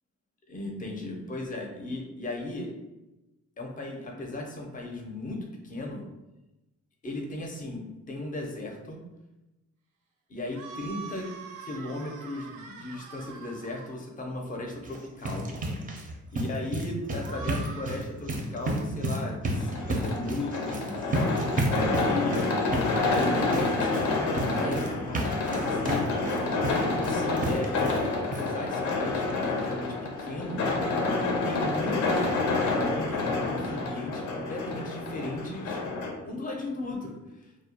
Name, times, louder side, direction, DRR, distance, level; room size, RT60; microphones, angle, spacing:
voice 1, 0.5-2.7 3.6-6.0 7.0-9.0 10.3-11.3 11.6-15.5 16.3-26.3 26.7-30.6 31.4-35.9 36.2-37.5, left 2 dB, 25° left, 0 dB, 0.5 m, -36 dB
sound 1, 10.5-13.9 17.2-18.0, right 5 dB, 85° right, 0.5 m, -44 dB
sound 2, 14.8-28.1 28.3-28.4 28.9-29.0 29.3-29.4, right 1 dB, 30° right, 0.4 m, -32 dB
sound 3, 19.5-36.1, left 3 dB, 70° left, 0.6 m, -28 dB
2.3 x 2.0 x 2.7 m, 1.0 s
cardioid pair, 90°, 30 cm